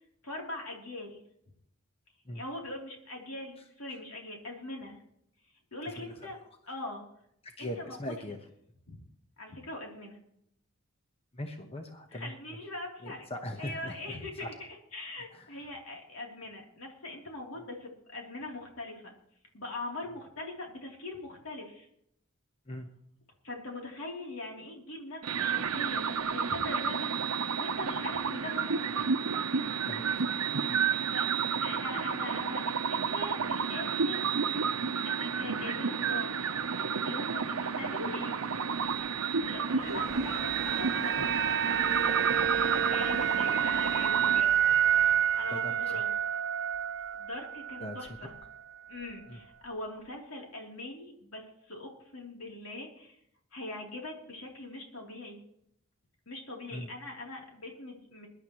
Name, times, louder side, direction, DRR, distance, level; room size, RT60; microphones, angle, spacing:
voice 1, 0.2-1.2 2.3-5.0 5.7-6.4 6.7-7.1 7.6-8.1 8.9-9.0 9.4-10.2 12.1-13.2 13.6-19.1 19.5-21.9 23.4-28.8 30.9-31.2 31.6-34.3 35.0-36.3 36.8-38.4 39.4-42.2 42.7-44.6 45.3-46.1 47.1-48.3 48.9-53.2 53.5-55.4 56.3-58.3, left 2 dB, 70° left, 0 dB, 3.2 m, -42 dB
voice 2, 5.8-6.3 7.4-8.4 11.3-12.3 13.0-14.5 15.3-15.6 22.7-22.9 29.8-30.3 30.6-30.8 45.5-46.0 47.8-48.0 48.2-48.3 49.3-49.4 56.7-56.9, left 1 dB, 25° left, 4 dB, 1.1 m, -41 dB
sound 1, 25.2-44.4, right 6 dB, 80° right, 0.8 m, -31 dB
Train, 38.9-48.5 48.9-49.8 50.0-50.1, equal, ahead, 6.4 m, -50 dB
sound 2, 39.8-48.1 48.3-48.5, right 9 dB, 55° right, 0.4 m, -29 dB
22.5 x 11.5 x 3.1 m, 0.72 s
head